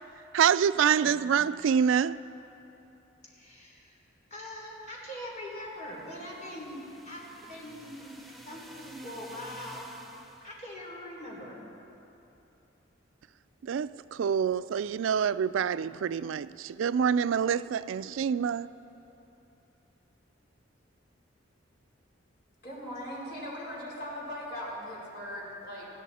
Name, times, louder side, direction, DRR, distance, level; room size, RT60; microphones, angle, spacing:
voice 1, 0.3-2.2 13.6-18.7, right 7 dB, 85° right, 0.3 m, -26 dB
voice 2, 3.2-4.0 4.3-9.9 10.4-11.6, left 1 dB, 40° left, 3.7 m, -42 dB
sound 1, 5.7-10.7, right 1 dB, ahead, 1.0 m, -51 dB
voice 3, 22.6-25.9, equal, 55° left, 4.3 m, -39 dB
20.5 x 15.5 x 4.2 m
head